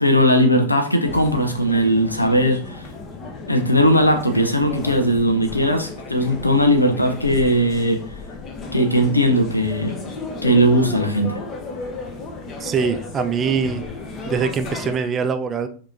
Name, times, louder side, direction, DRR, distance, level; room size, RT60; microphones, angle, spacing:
voice 1, 0.0-2.8 3.5-8.0 8.7-10.0 10.4-11.4, equal, 85° left, 0.7 m, -18 dB
sound 1, 1.1-15.0, left 3 dB, 30° left, 0.9 m, -34 dB
voice 2, 12.6-13.8 14.2-15.7, right 6 dB, 25° right, 0.5 m, -23 dB
4.8 x 2.8 x 3.9 m
figure-of-eight pair, 90°, 0 cm